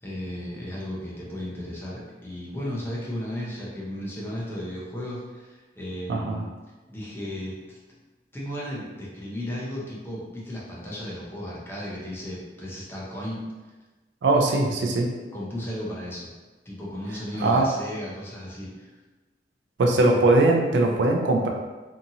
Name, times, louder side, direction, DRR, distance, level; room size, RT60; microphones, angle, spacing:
voice 1, 0.0-6.5 6.9-7.8 8.3-13.4 15.3-16.3 16.7-18.9, left 1 dB, 15° left, -6 dB, 0.6 m, -35 dB
voice 2, 6.1-6.4 14.2-15.1 17.4-17.7 19.8-21.5, right 2 dB, 80° right, 2 dB, 0.4 m, -20 dB
2.8 x 2.5 x 2.7 m, 1.2 s
head